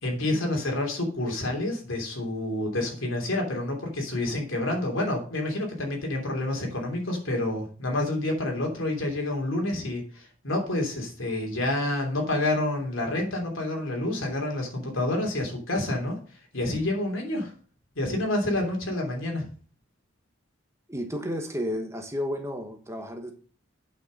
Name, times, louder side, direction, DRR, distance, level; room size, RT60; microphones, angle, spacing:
voice 1, 0.0-16.2 16.5-17.5 17.9-19.5, left 1 dB, 80° left, 1 dB, 3.1 m, -28 dB
voice 2, 20.9-23.3, equal, 15° right, 5 dB, 1.1 m, -32 dB
9.0 x 5.7 x 5.4 m, 0.40 s
head